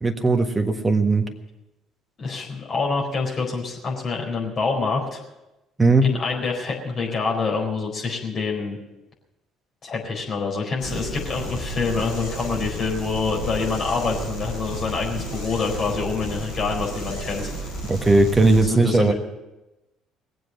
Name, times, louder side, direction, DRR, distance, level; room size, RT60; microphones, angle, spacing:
voice 1, 0.0-1.2 5.8-6.1 17.9-19.1, right 2 dB, 20° right, 6 dB, 1.5 m, -18 dB
voice 2, 2.2-5.2 6.0-8.8 9.8-17.8 18.5-19.1, left 4 dB, 45° left, -1 dB, 4.3 m, -26 dB
sound 1, 10.8-18.6, right 1 dB, 85° left, 5.1 m, -32 dB
20.0 x 7.7 x 7.3 m, 0.98 s
figure-of-eight pair, 50°, 0 cm